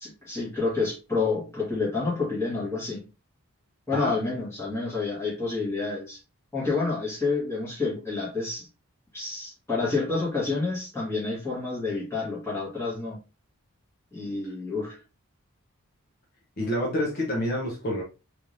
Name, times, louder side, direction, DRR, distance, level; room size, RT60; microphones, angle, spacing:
voice 1, 0.0-3.1 3.9-6.2 6.5-8.7 9.1-13.2 14.1-15.0, left 3 dB, 10° left, 1.6 m, -29 dB
voice 2, 16.6-18.0, left 1 dB, 45° left, 0.9 m, -28 dB
3.5 x 3.2 x 2.6 m
head